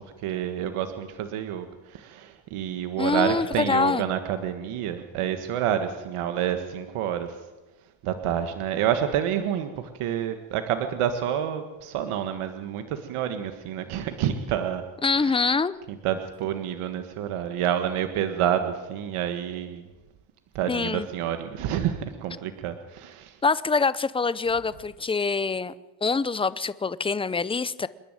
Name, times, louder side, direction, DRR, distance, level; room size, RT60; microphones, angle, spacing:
voice 1, 0.2-7.3 8.0-14.8 16.0-19.8 20.5-23.3, right 10 dB, 80° right, 8 dB, 1.7 m, -28 dB
voice 2, 3.0-4.1 15.0-15.7 20.7-21.1 23.4-25.7 26.0-27.9, left 4 dB, 10° left, 17 dB, 0.6 m, -25 dB
27.0 x 11.0 x 9.1 m, 1.1 s
cardioid pair, 120°, 50 cm